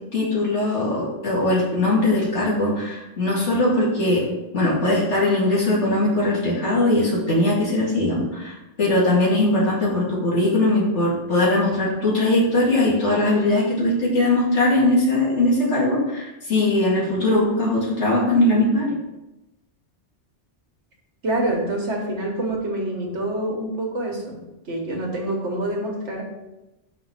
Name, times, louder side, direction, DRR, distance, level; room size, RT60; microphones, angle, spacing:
voice 1, 0.1-4.3 4.5-18.9, left 2 dB, 80° left, -5 dB, 2.5 m, -20 dB
voice 2, 21.2-24.4 24.7-26.2, right 1 dB, 75° right, 0 dB, 1.7 m, -26 dB
5.6 x 4.2 x 5.8 m, 0.98 s
omnidirectional pair, 1.2 m